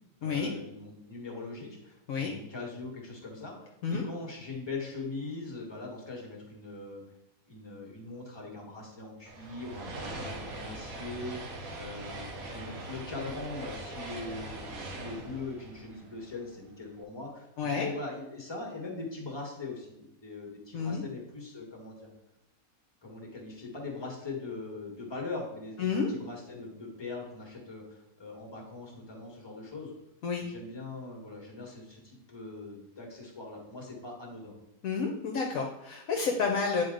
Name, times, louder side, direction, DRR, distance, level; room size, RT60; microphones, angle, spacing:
voice 1, 0.2-7.0 7.4-22.1 23.0-29.9 30.4-34.5, left 3 dB, 15° left, -1 dB, 1.5 m, -41 dB
sound 1, 9.3-16.7, right 1 dB, 65° right, 1.5 m, -41 dB
voice 2, 20.7-21.0 25.8-26.1 30.2-30.4 34.8-36.8, left 5 dB, 65° left, 1 dB, 1.1 m, -30 dB
9.4 x 4.2 x 3.9 m, 0.86 s
omnidirectional pair, 1.7 m